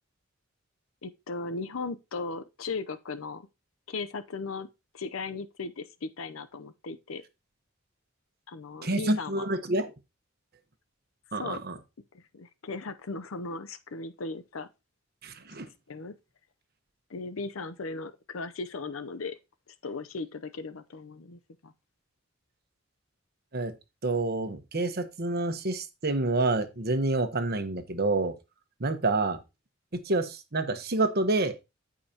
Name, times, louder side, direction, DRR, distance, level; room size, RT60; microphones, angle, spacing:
voice 1, 1.0-3.5 3.9-4.7 4.9-7.2 8.5-9.5 11.3-11.6 12.1-14.7 15.9-16.1 17.1-19.4 19.8-21.7, left 3 dB, 85° left, 0.7 m, -37 dB
voice 2, 8.8-9.9 11.3-11.8 15.2-15.7 23.5-23.7 24.0-28.3 28.8-29.4 30.0-31.6, right 2 dB, 50° right, 1.2 m, -28 dB
14.0 x 5.0 x 2.9 m
head